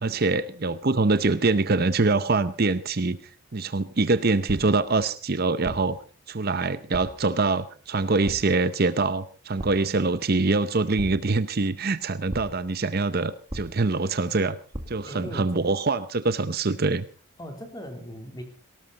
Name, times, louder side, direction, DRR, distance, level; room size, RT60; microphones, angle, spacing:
voice 1, 0.0-3.2 3.5-6.0 6.3-14.6 14.9-17.1, right 3 dB, 45° right, 13 dB, 0.7 m, -24 dB
sound 1, 5.6-6.1 6.9-7.3 8.3-8.7 9.6-10.0 11.0-11.5 12.3-12.7 13.5-14.0 14.7-15.2, equal, 20° right, 1.7 m, -38 dB
voice 2, 15.1-15.6 17.4-18.4, equal, 20° left, 5 dB, 3.3 m, -39 dB
19.5 x 18.0 x 4.1 m, 0.38 s
head